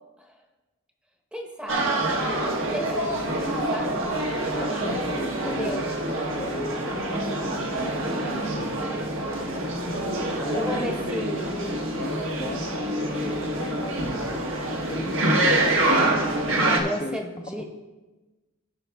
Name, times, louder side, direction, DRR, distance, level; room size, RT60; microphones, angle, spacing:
voice 1, 1.3-4.1 4.5-5.0 5.6-5.9 10.5-11.7 16.7-17.7, equal, 5° right, 2 dB, 1.0 m, -34 dB
sound 1, 1.7-16.8, right 1 dB, 70° right, 1.3 m, -26 dB
voice 2, 4.5-8.8 10.3-16.0 16.4-17.2, left 2 dB, 25° left, 1 dB, 0.5 m, -38 dB
15.5 x 5.8 x 3.5 m, 1.1 s
head